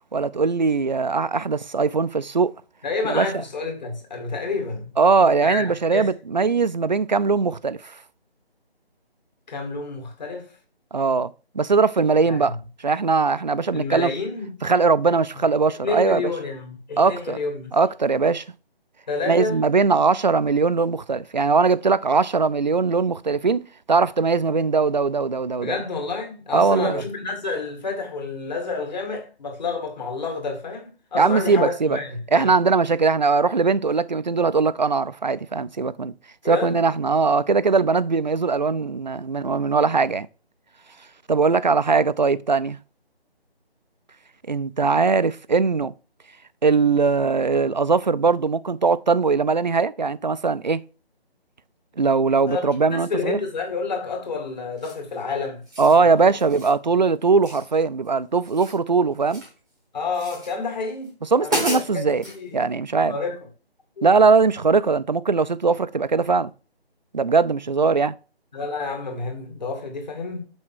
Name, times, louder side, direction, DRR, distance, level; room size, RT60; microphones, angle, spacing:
voice 1, 0.1-2.5 3.0-3.3 5.0-8.0 10.9-12.6 12.8-14.1 14.6-16.3 17.0-17.4 17.7-18.5 19.3-25.8 26.5-27.0 31.1-32.0 32.3-36.1 36.5-40.3 41.3-42.8 44.5-45.9 46.6-50.8 52.0-53.4 55.8-59.4 61.3-62.2 62.5-63.1 64.0-66.5 67.1-68.1, right 4 dB, 45° right, 0.4 m, -20 dB
voice 2, 2.8-4.9 5.4-5.6 5.9-6.1 9.5-10.5 12.3-12.6 13.7-14.5 15.3-17.8 19.1-19.6 25.6-32.5 36.4-36.8 52.5-55.6 56.0-56.3 59.9-61.1 61.4-62.6 63.1-63.5 64.0-64.1 68.5-70.5, left 4 dB, 45° left, 2.2 m, -29 dB
sound 1, 54.8-55.1 55.6-56.0 56.4-56.8 57.4-58.1 58.3-59.6 60.1-60.5 61.0-61.1 61.4-62.4, equal, ahead, 0.9 m, -33 dB
6.3 x 6.1 x 4.5 m
figure-of-eight pair, 165°, 31 cm